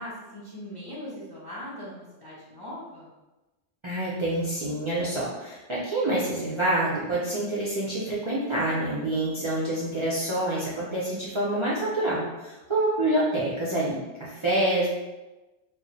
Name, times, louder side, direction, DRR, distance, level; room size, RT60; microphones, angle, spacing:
voice 1, 0.0-3.1, left 1 dB, 30° left, -7 dB, 0.4 m, -40 dB
voice 2, 3.8-14.9, right 1 dB, 45° right, -8 dB, 0.4 m, -27 dB
2.3 x 2.1 x 3.8 m, 1.1 s
omnidirectional pair, 1.1 m